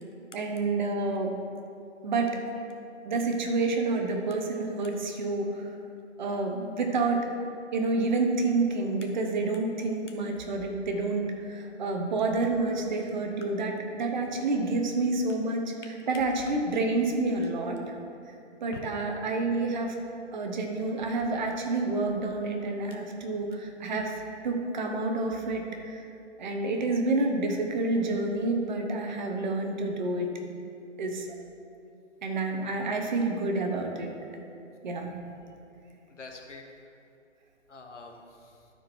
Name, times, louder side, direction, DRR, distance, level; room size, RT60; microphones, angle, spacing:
voice 1, 0.3-1.3 2.0-2.4 3.0-5.8 6.2-7.3 7.7-15.7 16.1-17.9 18.6-20.0 20.3-26.0 26.4-30.3 31.0-31.3 32.2-34.1 34.8-35.1, right 3 dB, 40° right, 3 dB, 1.0 m, -29 dB
voice 2, 36.1-36.6 37.7-38.7, left 4 dB, 75° left, 1 dB, 1.5 m, -46 dB
13.0 x 4.6 x 4.4 m, 2.6 s
figure-of-eight pair, 135°, 36 cm